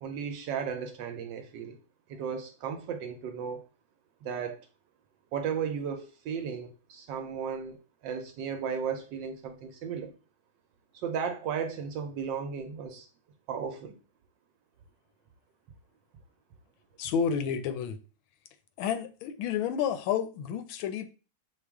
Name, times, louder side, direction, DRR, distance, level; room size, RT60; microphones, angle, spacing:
voice 1, 0.0-1.8 2.1-3.6 4.2-4.6 5.3-7.8 8.0-10.1 10.9-13.1 13.5-14.0, right 7 dB, 75° right, 1.1 m, -35 dB
voice 2, 17.0-18.0 18.8-21.1, left 7 dB, 80° left, 1.3 m, -30 dB
6.1 x 2.3 x 3.4 m
omnidirectional pair, 2.2 m